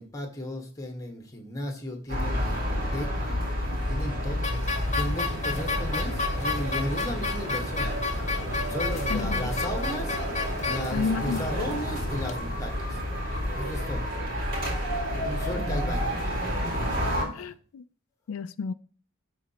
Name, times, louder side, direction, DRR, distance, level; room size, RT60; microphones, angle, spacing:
voice 1, 0.0-4.5 4.9-7.9 8.7-13.0 13.5-14.1 15.2-16.3 17.3-17.5, left 1 dB, 15° left, 1.3 m, -35 dB
sound 1, 2.1-17.2, equal, 45° right, 3.7 m, -30 dB
sound 2, 4.4-12.4, left 4 dB, 35° left, 0.8 m, -33 dB
voice 2, 9.1-9.5 10.9-11.4 17.3-17.8 18.3-18.7, left 5 dB, 90° left, 0.4 m, -31 dB
12.0 x 4.1 x 2.9 m
head